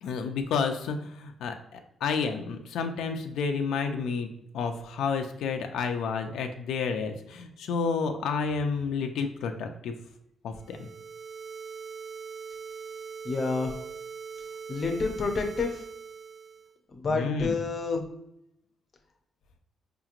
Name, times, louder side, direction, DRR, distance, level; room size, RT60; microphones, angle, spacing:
voice 1, 0.0-4.3 4.5-9.9 10.4-10.9 17.1-17.6, left 5 dB, 85° left, 5 dB, 0.4 m, -30 dB
sound 1, 10.6-16.7, right 6 dB, 70° right, 0.6 m, -41 dB
voice 2, 13.2-13.7 14.7-15.8 16.9-18.0, left 4 dB, 30° left, 4 dB, 0.5 m, -29 dB
5.0 x 2.9 x 2.4 m, 0.80 s
cardioid pair, 170°, 0 cm